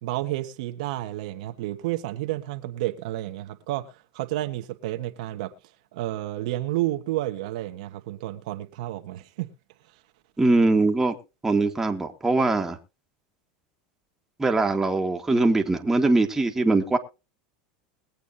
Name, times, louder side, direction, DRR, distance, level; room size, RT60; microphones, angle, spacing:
voice 1, 0.0-5.5 5.9-9.5, right 15 dB, 75° right, 1.3 m, -31 dB
voice 2, 10.4-11.2 11.4-12.8 14.4-17.0, right 2 dB, 10° right, 1.6 m, -22 dB
22.0 x 8.2 x 2.7 m
supercardioid pair, 120°, 4 cm